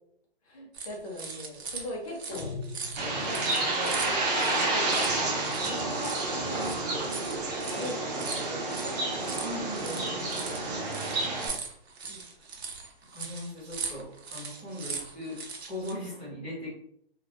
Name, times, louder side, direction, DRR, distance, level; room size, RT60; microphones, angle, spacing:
voice 1, 0.4-2.5 3.1-6.7 7.1-7.2 7.7-9.3 9.8-10.2 10.5-11.1 12.0-12.2, left 1 dB, 35° left, -2 dB, 0.7 m, -41 dB
sound 1, 0.7-15.9, right 5 dB, 85° right, 0.6 m, -40 dB
sound 2, 2.3-3.8, left 4 dB, 85° left, 0.6 m, -40 dB
Bird, 3.0-11.5, right 2 dB, 40° right, 0.7 m, -30 dB
voice 2, 9.4-10.3 13.1-16.7, left 1 dB, 5° right, -12 dB, 0.6 m, -39 dB
2.2 x 2.1 x 2.8 m, 0.67 s
hypercardioid pair, 145°, 31 cm